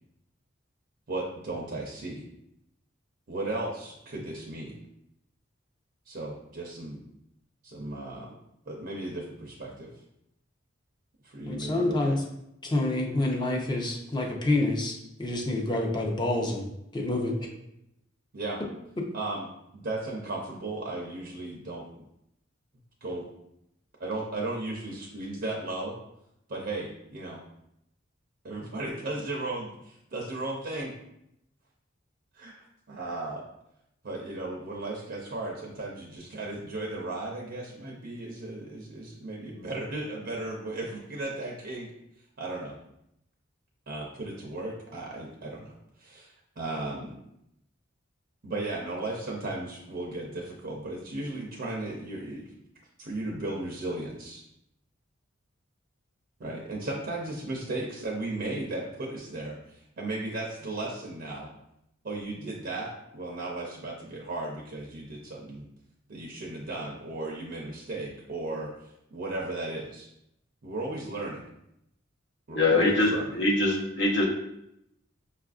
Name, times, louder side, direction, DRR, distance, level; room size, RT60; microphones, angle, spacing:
voice 1, 1.1-2.2 3.3-4.8 6.1-7.0 7.6-8.3 8.7-9.9 11.2-12.2 18.3-18.6 19.1-19.5 19.7-21.9 23.0-23.2 24.0-26.0 26.5-27.4 28.4-30.9 32.3-33.4 34.0-41.9 42.4-42.8 43.9-45.7 46.0-47.1 48.4-52.5 53.0-54.4 56.4-61.5 62.0-65.7 66.1-68.7 69.1-70.1 70.6-71.4 72.5-73.3, right 2 dB, 50° right, -2 dB, 0.5 m, -35 dB
voice 2, 11.5-12.2 12.6-16.7 16.9-17.4, left 2 dB, 20° left, 0 dB, 0.5 m, -27 dB
voice 3, 72.5-74.3, left 2 dB, 65° left, -1 dB, 0.8 m, -23 dB
5.7 x 2.4 x 2.4 m, 0.81 s
head